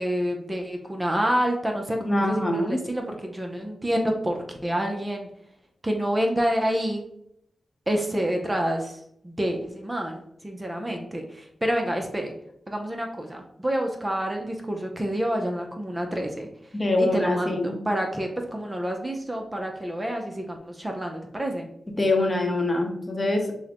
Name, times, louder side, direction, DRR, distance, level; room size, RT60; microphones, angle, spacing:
voice 1, 0.0-5.3 5.8-7.0 7.9-12.3 12.7-16.5 17.0-21.7, equal, 20° right, 2 dB, 0.6 m, -28 dB
voice 2, 2.0-2.8 16.7-17.7 22.0-23.5, left 2 dB, 30° left, 2 dB, 0.8 m, -24 dB
6.2 x 2.1 x 2.9 m, 0.74 s
cardioid pair, 75°, 0 cm